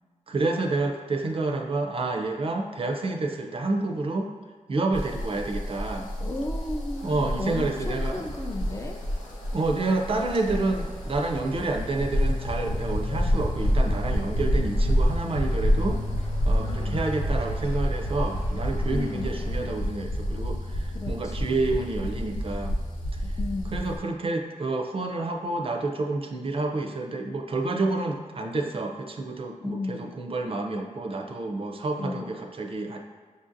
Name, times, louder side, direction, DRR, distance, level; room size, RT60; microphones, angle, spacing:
voice 1, 0.3-4.3 4.7-6.1 7.0-8.2 9.5-16.0 16.4-22.8 23.2-23.4 23.7-33.0, right 2 dB, 45° right, 3 dB, 0.4 m, -29 dB
sound 1, 4.9-24.0, equal, 90° left, 0.7 m, -28 dB
voice 2, 6.2-9.0 16.6-17.2 18.9-19.3 20.9-21.7 23.4-23.9 29.6-30.2 32.0-32.4, left 2 dB, 20° left, 3 dB, 0.4 m, -35 dB
sound 2, 6.9-19.6, left 1 dB, 50° left, 0.9 m, -49 dB
6.3 x 2.6 x 2.5 m, 1.5 s
wide cardioid pair, 80°, 13 cm